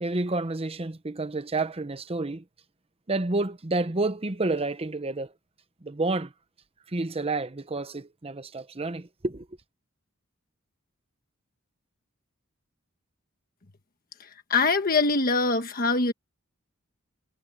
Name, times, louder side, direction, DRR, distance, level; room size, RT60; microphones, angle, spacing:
voice 1, 0.0-2.4 3.1-5.3 5.8-6.3 6.9-9.5, right 2 dB, 30° right, 0.9 m, -29 dB
voice 2, 14.2-16.1, left 3 dB, 45° left, 1.3 m, -24 dB
head